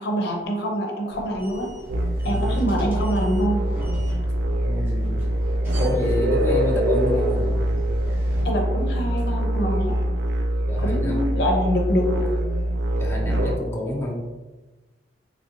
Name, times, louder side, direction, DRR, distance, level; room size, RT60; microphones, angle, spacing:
voice 1, 0.0-1.7 2.2-3.7 8.4-10.0 10.8-12.3, equal, 65° left, 2 dB, 0.6 m, -25 dB
sound 1, 1.1-8.4, equal, 15° right, 0.8 m, -38 dB
sound 2, 1.9-13.6, right 1 dB, 70° right, 0.4 m, -24 dB
voice 2, 2.2-2.6 4.6-5.3 5.8-7.6 10.7-11.2 13.0-14.2, equal, 15° left, -2 dB, 0.4 m, -29 dB
3.1 x 2.6 x 2.7 m, 1.1 s
head